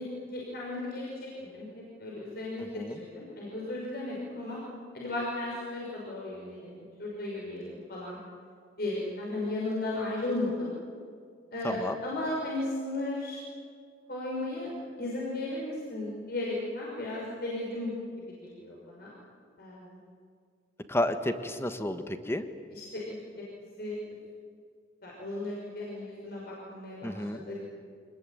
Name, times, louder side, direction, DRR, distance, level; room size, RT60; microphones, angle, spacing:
voice 1, 0.0-1.7 2.0-2.7 3.0-4.6 4.9-8.2 8.8-10.7 11.5-13.4 14.1-14.7 15.0-17.9 18.4-19.1 19.6-20.0 22.7-23.2 23.8-24.0 25.0-27.6, left 2 dB, 60° left, -4 dB, 6.1 m, -35 dB
voice 2, 2.6-3.0 11.6-12.0 20.9-22.4 27.0-27.4, left 1 dB, 15° left, 9 dB, 1.4 m, -31 dB
25.5 x 21.0 x 9.2 m, 2.1 s
head